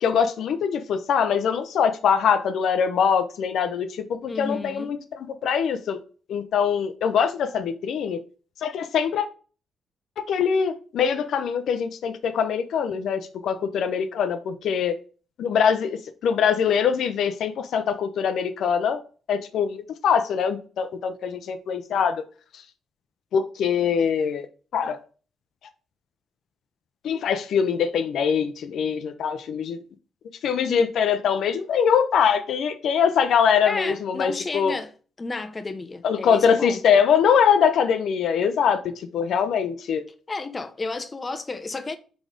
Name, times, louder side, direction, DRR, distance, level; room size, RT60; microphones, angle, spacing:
voice 1, 0.0-6.0 6.3-8.2 8.6-9.2 10.2-15.0 15.4-19.0 19.3-22.2 23.3-24.5 24.7-25.0 27.0-29.8 30.4-34.7 36.0-38.8 39.1-40.0, left 7 dB, 70° left, 0.6 m, -23 dB
voice 2, 4.3-5.0 30.7-30.9 33.6-34.9 35.2-36.8 40.3-42.0, left 3 dB, 25° left, 0.7 m, -32 dB
4.8 x 4.0 x 5.2 m
cardioid pair, 90°, 0 cm